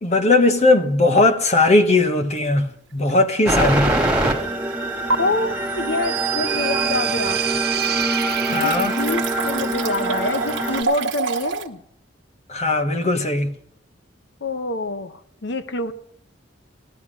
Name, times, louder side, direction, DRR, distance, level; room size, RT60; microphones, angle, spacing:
voice 1, 0.0-3.9 8.4-8.9 12.5-13.5, left 2 dB, 40° left, 1.2 m, -18 dB
sound 1, 2.3-2.6 3.1-3.2 5.1-5.2 7.0-7.1 7.4-11.7, right 5 dB, 90° right, 1.2 m, -28 dB
sound 2, 3.5-10.8, right 1 dB, 5° right, 2.5 m, -24 dB
voice 2, 5.2-7.5 8.5-11.8 14.4-15.9, left 2 dB, 65° left, 1.0 m, -26 dB
sound 3, 5.6-9.4, right 12 dB, 55° right, 0.7 m, -27 dB
15.0 x 12.0 x 6.2 m
head